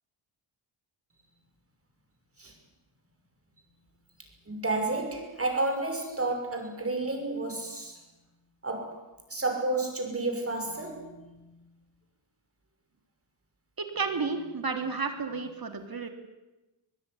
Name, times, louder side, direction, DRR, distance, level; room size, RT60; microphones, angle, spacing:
voice 1, 4.5-8.0 8.6-9.0 9.3-11.5, right 2 dB, 25° right, 4 dB, 5.9 m, -31 dB
voice 2, 14.0-16.1, right 4 dB, 45° right, 6 dB, 3.5 m, -31 dB
22.0 x 21.5 x 9.8 m, 1.0 s
wide cardioid pair, 150°, 50 cm